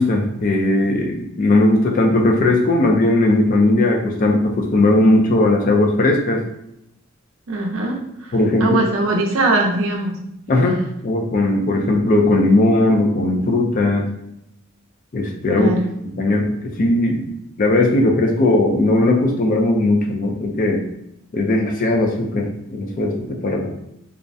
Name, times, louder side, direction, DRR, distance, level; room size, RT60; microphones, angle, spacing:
voice 1, 0.0-6.4 8.3-8.8 10.5-14.1 15.1-15.7 16.2-16.5 16.8-17.3 17.6-20.8 21.3-23.7, left 2 dB, 40° left, 1 dB, 0.4 m, -17 dB
voice 2, 7.5-8.0 8.6-10.2 15.6-15.8, right 2 dB, 70° right, 1 dB, 0.5 m, -20 dB
2.4 x 2.0 x 2.5 m, 0.79 s
head